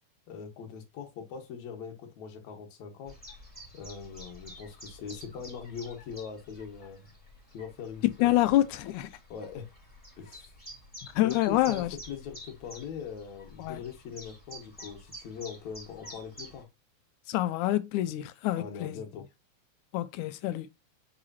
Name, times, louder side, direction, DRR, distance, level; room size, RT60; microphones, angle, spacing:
voice 1, 0.3-3.1 3.7-7.1 7.5-8.4 9.3-9.7 10.2-10.5 11.1-16.7 18.5-19.3, left 6 dB, 70° left, 2.6 m, -41 dB
Chirp tweet, 3.1-16.6, equal, 5° left, 3.2 m, -49 dB
voice 2, 8.2-9.1 11.2-11.9 13.6-13.8 17.3-19.0 19.9-20.7, left 15 dB, 90° left, 2.1 m, -27 dB
7.8 x 5.0 x 2.8 m
omnidirectional pair, 3.5 m